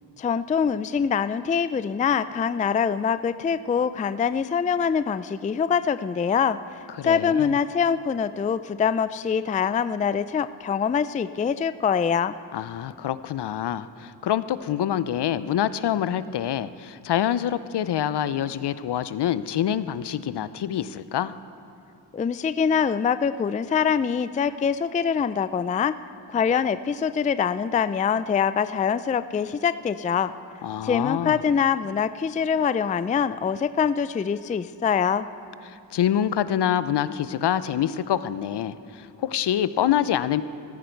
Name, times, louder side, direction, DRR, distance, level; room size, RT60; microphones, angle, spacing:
voice 1, 0.2-12.4 22.1-25.9 26.3-30.3 30.8-35.3, left 7 dB, 20° left, 14 dB, 0.3 m, -24 dB
voice 2, 7.0-7.6 12.5-21.3 30.6-31.4 35.7-40.4, left 10 dB, 60° left, 15 dB, 0.7 m, -26 dB
15.0 x 14.5 x 4.6 m, 2.6 s
cardioid pair, 55°, 45 cm